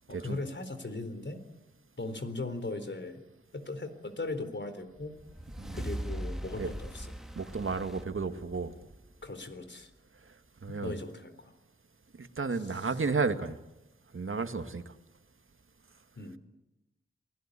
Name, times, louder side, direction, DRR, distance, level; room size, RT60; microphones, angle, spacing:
voice 1, 0.1-1.4 2.0-3.2 3.5-5.1 5.7-7.1 9.2-9.9 10.8-11.5 16.2-16.4, left 2 dB, 60° left, 10 dB, 4.0 m, -38 dB
sound 1, 5.0-9.5, right 1 dB, ahead, 3.1 m, -41 dB
voice 2, 7.4-8.7 10.6-11.0 12.2-13.6 14.1-14.8, right 4 dB, 75° right, 9 dB, 2.0 m, -32 dB
29.0 x 20.0 x 9.9 m, 0.91 s
wide cardioid pair, 60°, 21 cm